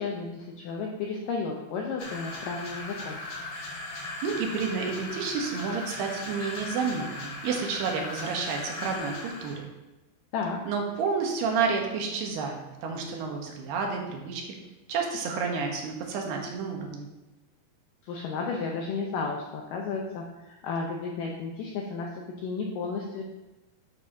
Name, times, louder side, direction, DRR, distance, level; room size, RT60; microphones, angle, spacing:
voice 1, 0.0-3.2 10.3-10.6 18.0-23.2, left 4 dB, 85° left, 0 dB, 1.9 m, -33 dB
sound 1, 2.0-9.6, left 2 dB, 60° left, 2.9 m, -38 dB
voice 2, 4.2-9.7 10.7-14.5 14.9-17.1, right 5 dB, 75° right, 1 dB, 3.0 m, -30 dB
11.5 x 6.9 x 2.8 m, 1.1 s
omnidirectional pair, 4.9 m